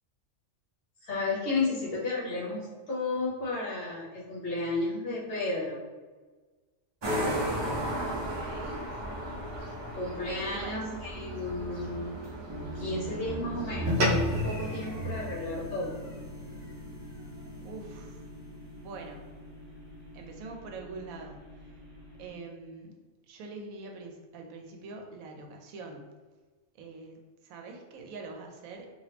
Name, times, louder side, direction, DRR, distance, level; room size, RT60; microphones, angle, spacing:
voice 1, 1.0-5.8 9.9-12.2 12.7-15.9, left 2 dB, 50° left, -6 dB, 0.9 m, -33 dB
sound 1, 7.0-14.5, right 1 dB, 40° right, 0.3 m, -35 dB
voice 2, 8.1-8.9 10.5-10.9 13.1-13.2 17.6-18.2 18.7-19.3 20.1-21.8 22.2-22.9 23.3-26.2 26.7-28.9, right 3 dB, 85° right, 2 dB, 1.0 m, -44 dB
sound 2, 12.5-22.3, equal, 20° right, 1.1 m, -44 dB
sound 3, 13.8-18.5, left 1 dB, 60° right, 0.9 m, -33 dB
2.8 x 2.6 x 3.3 m, 1.3 s
omnidirectional pair, 1.4 m